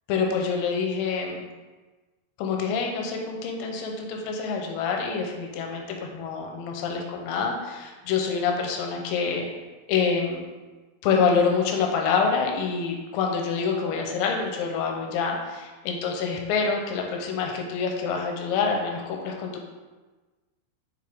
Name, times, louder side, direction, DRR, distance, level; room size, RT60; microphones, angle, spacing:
voice 1, 0.1-1.4 2.4-9.5 9.9-10.5 11.0-19.6, left 5 dB, 85° left, 1 dB, 2.9 m, -26 dB
8.6 x 3.6 x 3.7 m, 1.3 s
omnidirectional pair, 5.4 m